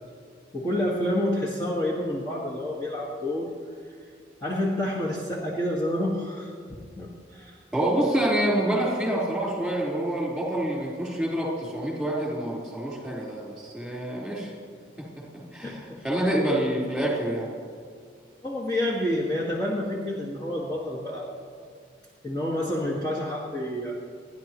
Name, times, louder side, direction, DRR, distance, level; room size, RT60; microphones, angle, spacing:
voice 1, 0.5-3.5 4.4-7.6 15.6-16.0 18.4-21.3 22.2-24.0, left 1 dB, 20° left, -6 dB, 1.7 m, -29 dB
voice 2, 7.7-14.5 15.5-17.5, right 1 dB, ahead, -4 dB, 4.1 m, -27 dB
29.0 x 11.0 x 3.1 m, 2.2 s
head